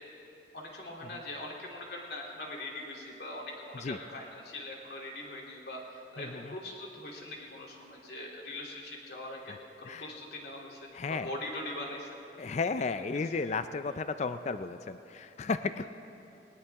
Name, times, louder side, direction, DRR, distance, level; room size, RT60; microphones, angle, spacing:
voice 1, 0.5-12.2 13.0-13.2, left 1 dB, 60° left, -2 dB, 2.8 m, -42 dB
voice 2, 6.2-6.5 9.5-9.6 9.8-10.1 10.9-11.3 12.4-15.9, left 4 dB, 40° left, 11 dB, 0.4 m, -34 dB
20.0 x 19.5 x 3.5 m, 2.9 s
head